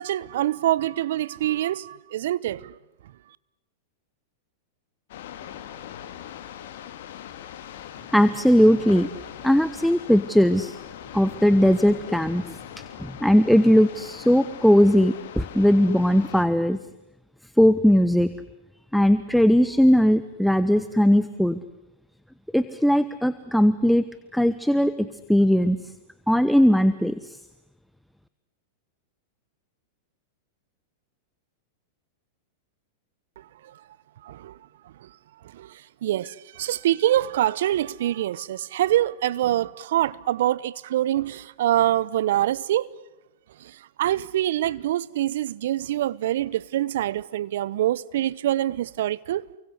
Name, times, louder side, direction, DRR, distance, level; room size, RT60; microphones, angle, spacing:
voice 1, 0.0-2.7 33.4-33.7 34.2-34.6 35.0-35.1 35.4-42.9 43.6-49.5, right 13 dB, 65° right, 1.0 m, -25 dB
sound 1, 5.1-16.4, left 10 dB, 65° left, 3.2 m, -41 dB
voice 2, 8.1-9.1 9.4-10.8 11.1-12.5 13.0-16.8 17.6-18.3 18.9-21.6 22.5-24.0 24.3-25.8 26.3-27.4, equal, ahead, 1.2 m, -19 dB
29.5 x 24.5 x 8.3 m
hypercardioid pair, 100°, 0 cm